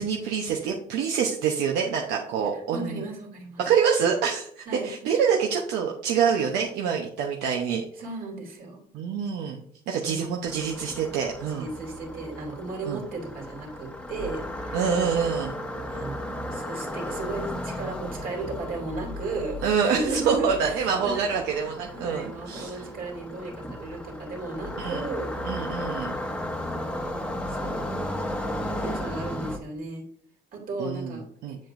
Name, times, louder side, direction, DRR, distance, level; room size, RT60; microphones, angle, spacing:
voice 1, 0.0-3.0 3.6-7.8 8.9-9.6 9.9-11.7 12.9-13.0 14.7-15.6 19.6-22.8 24.8-25.0 25.4-26.2 30.8-31.6, right 7 dB, 85° right, 0 dB, 0.8 m, -26 dB
voice 2, 2.5-3.6 4.7-4.9 8.0-8.8 10.0-10.4 11.5-14.8 15.9-21.3 21.9-25.4 25.7-25.8 26.6-28.1 28.7-30.0 30.5-31.6, right 2 dB, 60° right, 0 dB, 2.7 m, -35 dB
sound 1, 10.4-29.6, left 1 dB, 5° left, 1.0 m, -35 dB
7.5 x 7.4 x 2.6 m, 0.63 s
cardioid pair, 110°, 17 cm